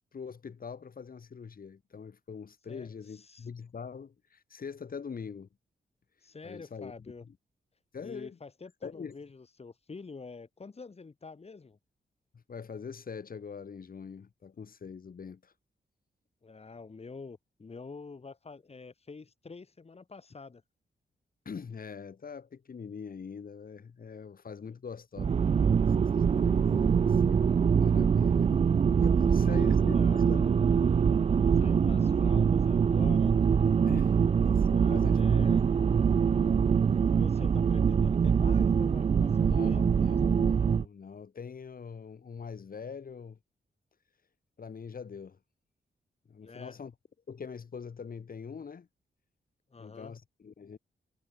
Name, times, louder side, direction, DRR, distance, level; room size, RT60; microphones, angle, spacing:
voice 1, 0.0-5.5 6.4-6.9 7.2-7.3 7.9-8.4 8.8-9.1 12.3-15.5 21.5-26.1 26.4-28.5 29.0-30.5 33.9-35.5 39.4-43.4 44.6-45.4 46.3-46.9 47.3-48.9 49.8-50.8, left 6 dB, 55° left, 5.8 m, -43 dB
voice 2, 2.7-3.5 6.2-7.2 8.0-11.8 16.4-20.6 29.5-30.2 31.5-33.3 34.7-35.6 37.1-40.2 46.4-46.8 49.7-50.2, left 4 dB, 35° left, 5.2 m, -47 dB
sound 1, 25.2-40.8, right 6 dB, 35° right, 0.4 m, -24 dB
wide cardioid pair, 115°, 18 cm